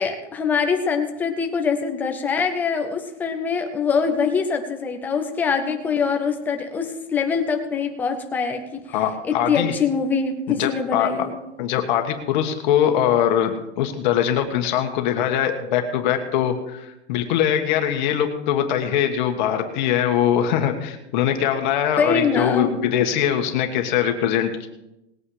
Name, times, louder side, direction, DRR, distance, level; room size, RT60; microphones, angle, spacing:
voice 1, 0.0-8.8 9.2-11.4 22.0-22.7, left 5 dB, 5° left, 5 dB, 0.4 m, -23 dB
voice 2, 8.9-9.7 10.5-11.1 11.6-24.7, left 10 dB, 40° left, 5 dB, 1.5 m, -22 dB
19.5 x 8.9 x 4.9 m, 0.89 s
supercardioid pair, 170°, 35 cm